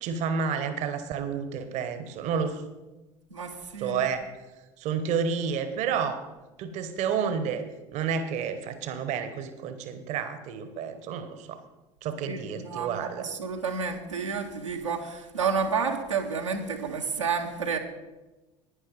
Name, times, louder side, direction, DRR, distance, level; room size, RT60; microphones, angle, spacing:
voice 1, 0.0-2.6 3.8-4.3 4.8-6.2 6.6-7.6 7.9-11.6 12.0-13.3, right 6 dB, 50° right, 10 dB, 1.1 m, -30 dB
voice 2, 3.3-4.1 12.2-17.8, right 5 dB, 80° right, 1 dB, 1.2 m, -30 dB
11.5 x 9.9 x 5.2 m, 1.1 s
figure-of-eight pair, 65°, 16 cm